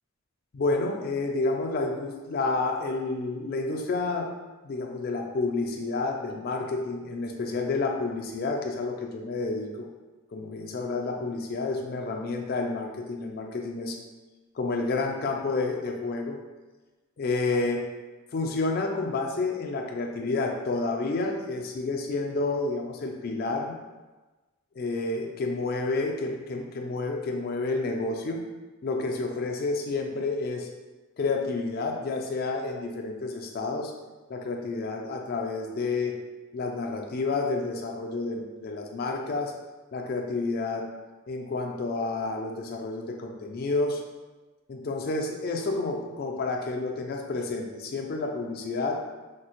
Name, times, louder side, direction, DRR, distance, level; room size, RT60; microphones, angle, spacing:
voice 1, 0.5-4.3 4.6-9.9 10.3-14.0 14.5-16.4 17.2-17.9 18.3-23.7 24.7-28.4 28.8-30.7 31.2-33.9 34.3-36.2 36.5-39.5 39.9-40.9 41.3-44.0 44.7-49.0, left 3 dB, 45° left, 2 dB, 0.3 m, -30 dB
3.2 x 2.1 x 2.9 m, 1.2 s
head